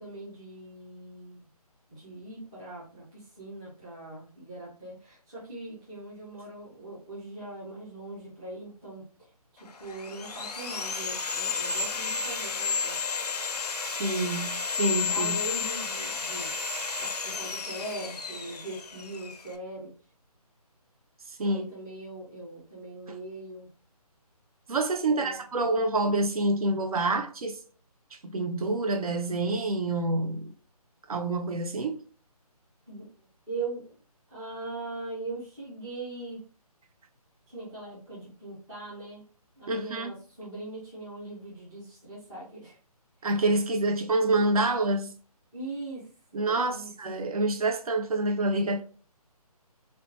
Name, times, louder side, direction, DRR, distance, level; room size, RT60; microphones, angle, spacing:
voice 1, 0.0-1.5 1.9-9.0 9.5-13.1 15.1-19.9 21.4-23.7 25.1-25.4 32.9-33.1 33.5-34.0 34.3-36.4 37.5-39.2 39.6-42.8 45.5-46.9, right 2 dB, 5° right, 0.4 m, -40 dB
Sawing, 9.7-19.5, left 5 dB, 90° left, 0.5 m, -32 dB
voice 2, 14.0-15.4 21.4-21.7 24.7-27.6 28.2-30.5 31.1-32.0 39.7-40.1 43.2-45.1 46.3-48.8, right 2 dB, 65° right, 0.5 m, -27 dB
2.7 x 2.1 x 2.7 m
figure-of-eight pair, 155°, 20 cm